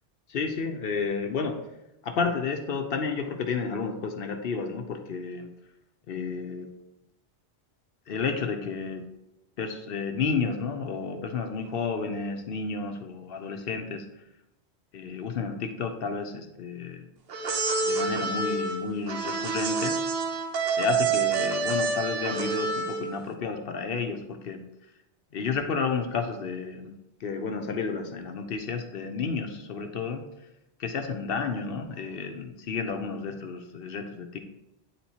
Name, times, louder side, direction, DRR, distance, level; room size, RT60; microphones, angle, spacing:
voice 1, 0.3-1.6 2.0-5.5 6.1-6.7 8.1-9.0 9.6-14.0 14.9-17.1 17.8-20.0 20.8-24.6 25.3-26.9 27.2-30.2 30.8-34.4, left 5 dB, 60° left, 6 dB, 0.8 m, -31 dB
sound 1, 17.3-23.2, right 4 dB, 60° right, 0.9 m, -27 dB
8.7 x 4.4 x 2.8 m, 0.89 s
omnidirectional pair, 1.2 m